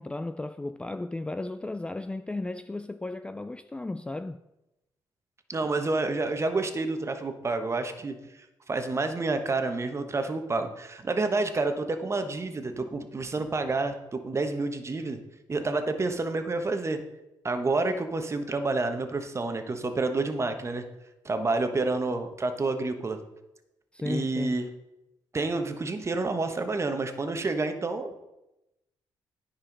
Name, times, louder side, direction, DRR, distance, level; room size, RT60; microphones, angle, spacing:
voice 1, 0.0-4.4 23.9-24.6, left 2 dB, 10° left, 0.3 m, -34 dB
voice 2, 5.5-8.1 8.7-15.2 15.5-17.0 17.4-20.8 21.2-23.2 24.0-24.7 25.3-28.2, right 3 dB, 30° right, 1.1 m, -29 dB
9.8 x 5.7 x 5.3 m
cardioid pair, 80°, 9 cm